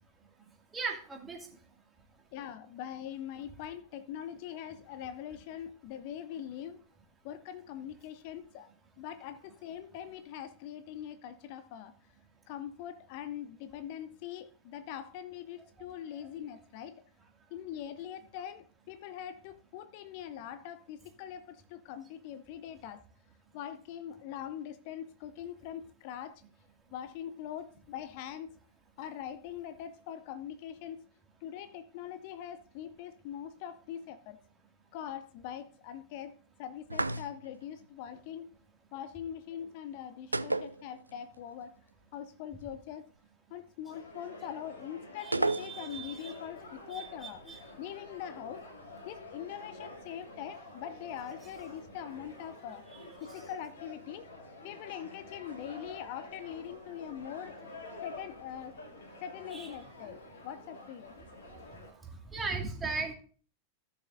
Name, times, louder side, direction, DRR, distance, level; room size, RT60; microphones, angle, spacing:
voice 1, 0.7-1.6 15.8-16.3 45.2-46.4 46.9-47.6 53.3-53.5 59.5-59.7 61.9-63.1, right 4 dB, 15° right, 2.2 m, -39 dB
voice 2, 2.3-6.8 7.2-8.7 9.0-11.9 12.5-17.0 17.5-23.0 23.5-26.4 26.9-28.6 29.0-31.1 31.4-34.4 34.9-38.5 38.9-41.7 42.1-43.1 43.5-48.7 49.0-52.9 53.2-54.3 54.6-57.6 58.0-58.8 59.2-61.1, left 9 dB, 45° left, 0.6 m, -42 dB
sound 1, 36.9-37.6 40.3-41.4 41.6-41.7 45.3-46.1, right 2 dB, 85° right, 0.3 m, -32 dB
sound 2, 43.9-61.9, left 2 dB, 65° left, 2.3 m, -49 dB
16.0 x 6.9 x 2.6 m
figure-of-eight pair, 90°, 0 cm